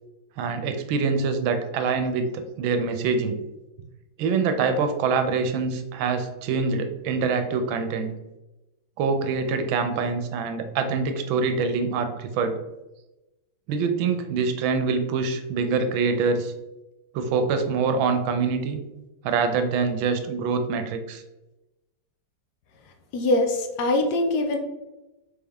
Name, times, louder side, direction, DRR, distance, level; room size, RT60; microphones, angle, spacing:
voice 1, 0.4-3.4 4.2-8.1 9.0-12.6 13.7-16.5 17.1-18.8 19.2-21.2, right 5 dB, 85° right, 7 dB, 1.4 m, -25 dB
voice 2, 23.1-24.6, left 2 dB, 70° left, 4 dB, 1.1 m, -23 dB
4.0 x 3.6 x 3.4 m, 1.0 s
omnidirectional pair, 2.1 m